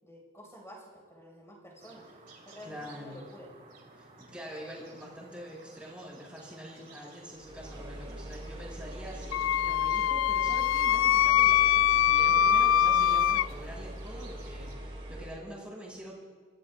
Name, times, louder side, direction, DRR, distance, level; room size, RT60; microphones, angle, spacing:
voice 1, 0.0-2.1 2.4-3.5 8.1-8.3, equal, 15° left, -2 dB, 5.1 m, -50 dB
sound 1, 1.8-14.8, right 3 dB, 45° right, 3.3 m, -55 dB
voice 2, 2.6-3.3 3.9-16.1, equal, 5° right, -5 dB, 5.6 m, -45 dB
sound 2, 7.3-15.4, right 1 dB, 30° right, 3.3 m, -42 dB
Wind instrument woodwind instrument, 9.3-13.5, left 10 dB, 85° left, 0.3 m, -23 dB
28.5 x 16.0 x 2.4 m, 1.5 s
head